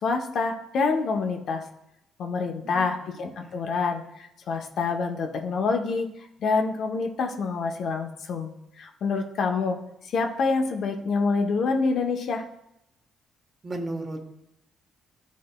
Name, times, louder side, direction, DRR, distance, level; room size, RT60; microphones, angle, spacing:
voice 1, 0.0-1.6 2.2-6.1 6.4-9.8 10.1-12.4, left 4 dB, 65° left, 3 dB, 0.8 m, -27 dB
voice 2, 2.5-2.9 3.4-3.6 13.6-14.3, right 2 dB, 35° right, 3 dB, 1.2 m, -35 dB
12.5 x 4.1 x 2.2 m, 0.85 s
cardioid pair, 90°, 0 cm